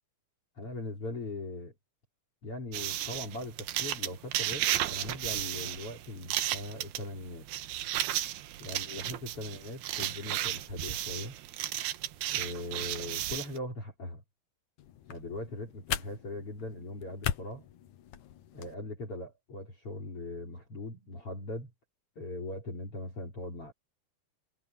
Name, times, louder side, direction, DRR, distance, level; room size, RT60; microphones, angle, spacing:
voice 1, 0.6-1.7 2.4-7.5 8.6-11.4 12.3-14.2 15.1-17.7 18.5-21.7 22.2-23.7, left 2 dB, 35° left, 5.0 m, -40 dB
sound 1, 2.7-13.6, right 13 dB, 75° right, 2.8 m, -34 dB
sound 2, 14.8-18.8, left 11 dB, 65° left, 2.1 m, -39 dB
omnidirectional pair, 4.7 m